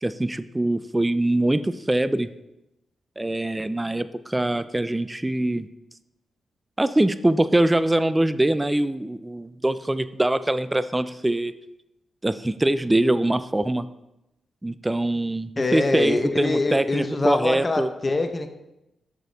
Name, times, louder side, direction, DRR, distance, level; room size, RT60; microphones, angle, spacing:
voice 1, 0.0-2.3 3.2-5.7 6.8-11.5 12.2-13.9 14.6-17.9, right 1 dB, 15° right, 13 dB, 0.3 m, -23 dB
voice 2, 15.6-18.5, left 2 dB, 35° left, 7 dB, 0.7 m, -24 dB
6.4 x 5.0 x 3.9 m, 0.91 s
cardioid pair, 60°, 0 cm